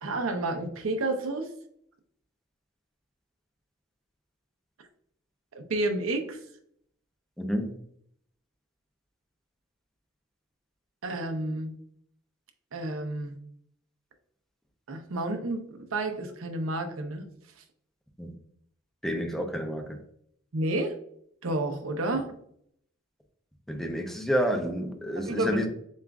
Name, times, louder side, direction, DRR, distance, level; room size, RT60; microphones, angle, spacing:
voice 1, 0.0-1.5 5.5-6.4 11.0-11.7 12.7-13.4 14.9-17.3 20.5-21.0 21.4-22.3 25.2-25.7, right 2 dB, 75° right, 5 dB, 0.7 m, -30 dB
voice 2, 7.4-7.7 18.2-18.3 19.0-20.0 23.7-25.7, equal, ahead, 4 dB, 0.5 m, -29 dB
7.1 x 2.5 x 2.3 m, 0.69 s
head